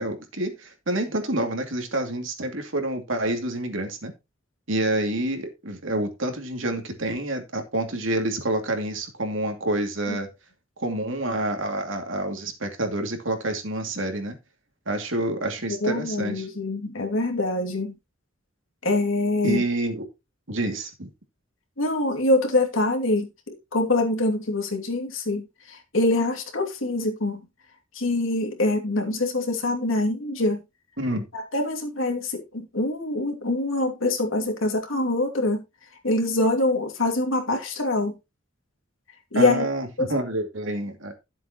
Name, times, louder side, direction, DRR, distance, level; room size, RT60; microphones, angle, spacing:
voice 1, 0.0-4.1 4.7-10.3 10.8-14.4 14.9-16.5 19.4-20.1 20.5-21.1 31.0-31.3 39.3-41.1, right 1 dB, 75° right, 2.6 m, -28 dB
voice 2, 15.7-17.9 18.8-19.6 21.8-23.3 23.7-27.4 27.9-30.6 31.3-35.6 36.0-38.1 39.3-39.7 40.0-40.1, left 2 dB, 75° left, 2.7 m, -24 dB
13.0 x 7.5 x 3.0 m
head